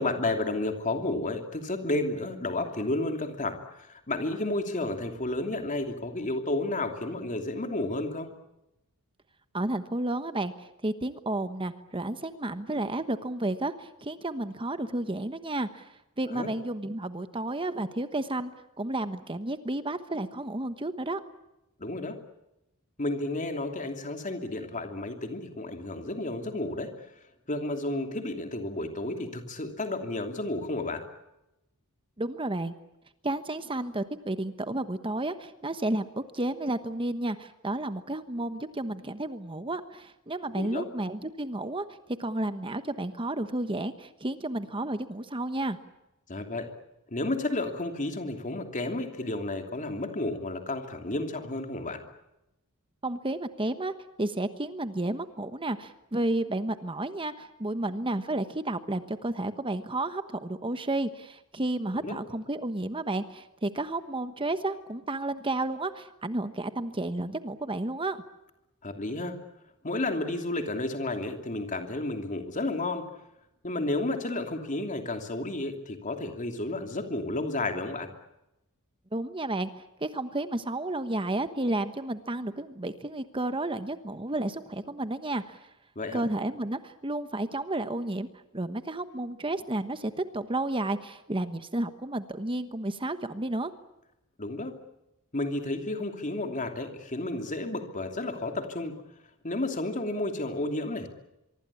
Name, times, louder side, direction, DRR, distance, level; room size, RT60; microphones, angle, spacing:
voice 1, 0.0-8.3 16.3-16.5 21.8-22.2 23.0-26.9 27.5-31.0 40.5-40.9 46.3-46.7 47.1-52.0 62.0-62.2 68.8-69.4 69.8-73.0 73.6-78.1 86.0-86.2 94.4-94.7 95.3-99.0 99.4-101.1, left 2 dB, 35° left, 5 dB, 2.9 m, -32 dB
voice 2, 9.5-18.5 18.8-21.2 32.2-32.7 33.2-41.8 42.2-45.8 53.0-53.9 54.2-68.2 79.1-79.7 80.0-85.6 86.1-88.3 88.5-93.7, right 2 dB, 25° right, 10 dB, 1.2 m, -32 dB
24.5 x 24.0 x 8.5 m, 0.90 s
head